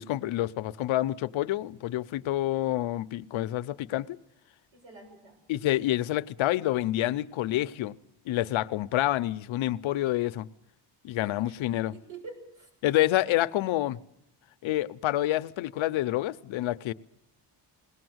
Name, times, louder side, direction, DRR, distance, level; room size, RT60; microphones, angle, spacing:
voice 1, 0.0-4.2 5.5-7.9 8.3-10.5 11.0-11.9 12.8-14.0 14.6-16.9, left 15 dB, 85° left, 0.7 m, -28 dB
voice 2, 4.7-5.4 11.4-11.5 11.9-12.7, right 4 dB, 85° right, 6.8 m, -46 dB
21.5 x 18.0 x 7.9 m
cardioid pair, 170°, 46 cm